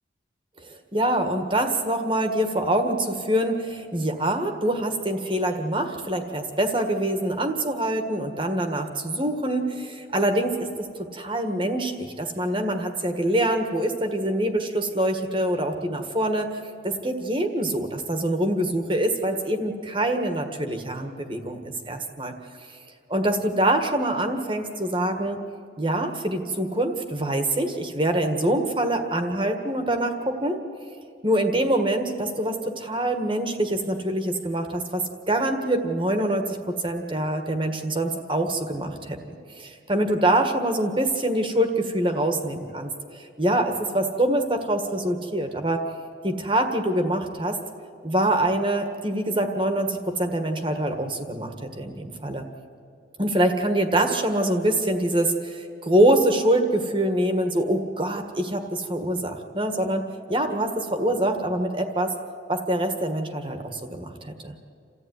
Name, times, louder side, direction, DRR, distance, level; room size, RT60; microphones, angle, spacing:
voice 1, 0.7-16.5 16.8-21.6 21.9-22.3 23.1-25.4 25.8-30.6 31.2-39.2 39.5-42.9 43.4-45.8 46.2-47.6 48.0-52.5 53.2-62.1 62.5-64.6, right 1 dB, 25° right, 5 dB, 1.6 m, -25 dB
28.5 x 14.5 x 9.6 m, 2.3 s
head